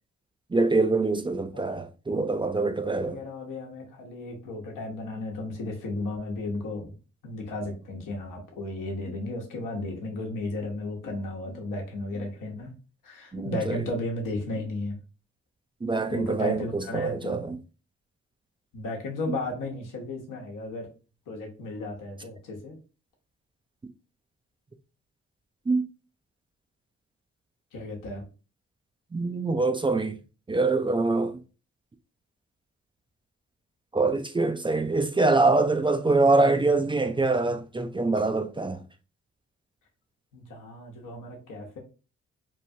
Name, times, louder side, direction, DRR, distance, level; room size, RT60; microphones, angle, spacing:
voice 1, 0.5-3.2 13.3-13.8 15.8-17.6 25.7-25.8 29.1-30.2 30.5-31.4 33.9-38.8, right 3 dB, 15° right, 0.4 m, -24 dB
voice 2, 2.8-6.9 7.2-12.7 13.0-15.0 16.1-17.4 18.7-20.9 21.3-22.7 27.7-28.2 40.3-41.8, left 2 dB, 75° left, 0.9 m, -34 dB
3.1 x 2.2 x 2.7 m
supercardioid pair, 45°, 32 cm